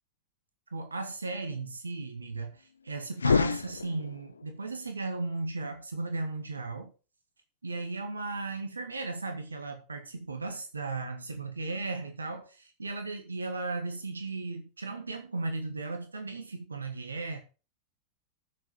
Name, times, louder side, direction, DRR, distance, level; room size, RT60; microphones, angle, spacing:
voice 1, 0.7-6.9 7.6-17.4, right 3 dB, 75° right, 1.9 m, -36 dB
sound 1, 3.1-4.4, left 5 dB, 75° left, 0.5 m, -28 dB
9.5 x 8.2 x 6.6 m
figure-of-eight pair, 90°, 0 cm